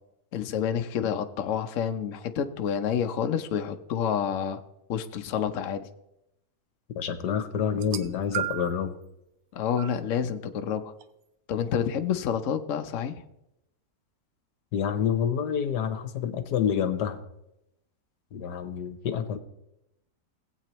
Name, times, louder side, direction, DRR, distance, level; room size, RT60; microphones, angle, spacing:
voice 1, 0.3-4.6 4.9-5.9 9.5-10.9 11.5-13.1, left 8 dB, 60° left, 7 dB, 0.9 m, -28 dB
voice 2, 6.9-8.9 14.7-17.2 18.3-19.4, left 8 dB, 75° left, 9 dB, 1.4 m, -28 dB
sound 1, 7.7-8.9 9.8-10.0 11.0-11.1, right 12 dB, 90° right, 1.3 m, -34 dB
19.0 x 8.4 x 3.0 m, 0.86 s
omnidirectional pair, 1.8 m